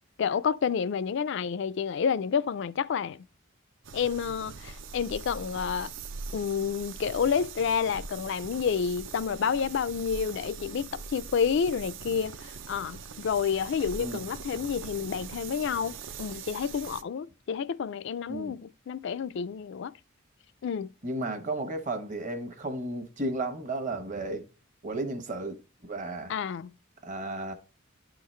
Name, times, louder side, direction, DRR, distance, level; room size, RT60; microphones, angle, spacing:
voice 1, 0.2-3.2 3.9-5.9 6.3-19.9 20.6-20.9 26.3-26.7, left 6 dB, 60° left, 0.3 m, -29 dB
sound 1, 3.8-17.0, right 5 dB, 65° right, 0.5 m, -42 dB
voice 2, 21.0-24.5 24.8-26.3 27.0-27.5, right 2 dB, 40° right, 1.0 m, -33 dB
11.5 x 3.9 x 3.1 m
head